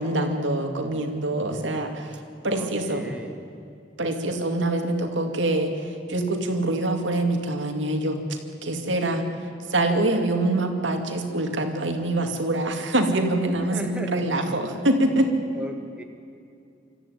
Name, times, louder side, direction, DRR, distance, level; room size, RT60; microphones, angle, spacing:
voice 1, 0.0-3.0 4.0-9.2 9.7-15.3, right 1 dB, 70° right, 5 dB, 2.4 m, -25 dB
voice 2, 2.5-3.4 13.7-14.1 15.5-16.0, equal, 5° right, 3 dB, 1.5 m, -35 dB
26.0 x 14.0 x 9.3 m, 2.6 s
head